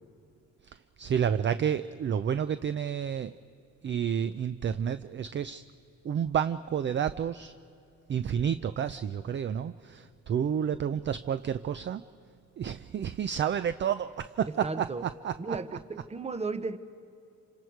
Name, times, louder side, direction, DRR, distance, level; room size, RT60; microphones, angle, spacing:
voice 1, 0.7-3.4 3.8-5.6 6.0-7.5 8.1-12.0 12.6-15.6, right 8 dB, 40° right, 14 dB, 0.5 m, -30 dB
voice 2, 14.5-15.0 15.4-16.8, right 3 dB, 20° right, 13 dB, 0.9 m, -35 dB
27.0 x 25.5 x 4.6 m, 2.7 s
cardioid pair, 90°, 30 cm